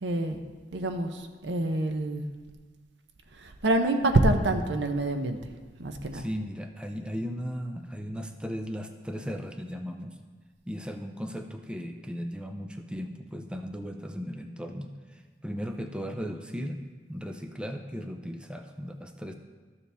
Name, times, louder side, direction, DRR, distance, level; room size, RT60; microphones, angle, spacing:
voice 1, 0.0-0.4 0.7-2.3 3.4-5.4 5.8-6.3, right 2 dB, 80° right, 7 dB, 0.7 m, -26 dB
voice 2, 6.1-10.2 10.7-16.8 17.1-19.3, equal, 5° right, 5 dB, 0.4 m, -36 dB
12.5 x 6.9 x 3.4 m, 1.4 s
head